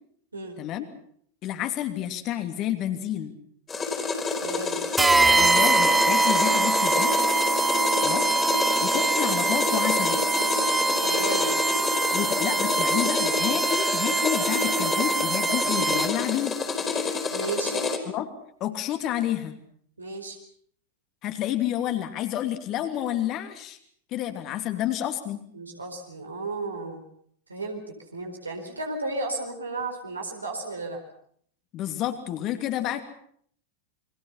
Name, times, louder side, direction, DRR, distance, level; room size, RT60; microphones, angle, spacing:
voice 1, 1.4-3.3 5.3-7.1 8.0-10.3 12.1-16.6 18.1-18.3 18.6-19.6 21.2-23.8 24.1-25.4 31.7-33.0, left 12 dB, 35° left, 7 dB, 2.9 m, -30 dB
sound 1, 3.7-18.0, left 4 dB, 20° left, 4.2 m, -28 dB
voice 2, 4.4-4.8 11.0-11.5 17.3-17.9 20.0-20.4 25.5-27.0 27.5-31.0, right 2 dB, 80° right, 2 dB, 4.4 m, -33 dB
sound 2, 5.0-16.3, right 3 dB, 10° right, 1.0 m, -23 dB
29.0 x 23.0 x 5.8 m, 0.63 s
figure-of-eight pair, 90°, 0 cm